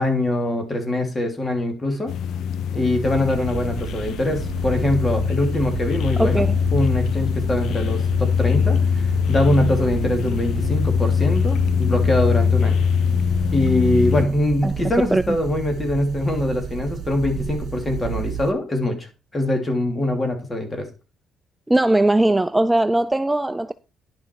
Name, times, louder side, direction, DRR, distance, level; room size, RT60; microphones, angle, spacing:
voice 1, 0.0-2.1 2.7-6.4 6.7-12.8 13.5-19.1 19.3-20.9, left 1 dB, 25° left, 2.8 m, -23 dB
sound 1, 2.1-14.3, left 7 dB, 75° left, 0.6 m, -22 dB
sound 2, 3.0-18.5, right 8 dB, 60° right, 1.1 m, -32 dB
voice 2, 6.2-6.6 14.6-14.7 15.1-15.4 21.7-23.7, right 1 dB, 10° right, 0.4 m, -19 dB
10.5 x 6.2 x 4.6 m
cardioid pair, 90°, 0 cm